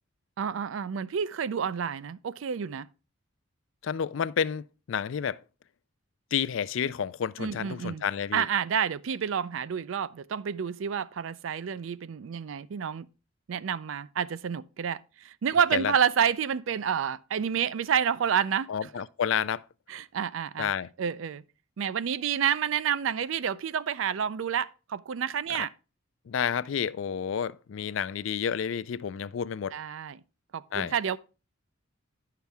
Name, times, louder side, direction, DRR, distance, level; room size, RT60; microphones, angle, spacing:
voice 1, 0.4-2.9 7.4-8.0 8.3-13.1 13.5-18.9 19.9-20.7 21.0-21.4 21.8-25.7 29.7-30.2 30.5-31.2, right 8 dB, 70° right, 0.4 m, -29 dB
voice 2, 3.8-5.4 6.3-8.5 15.7-15.9 18.7-19.6 20.6-20.9 26.3-29.7 30.7-30.9, left 7 dB, 65° left, 0.4 m, -30 dB
10.5 x 5.8 x 3.4 m
head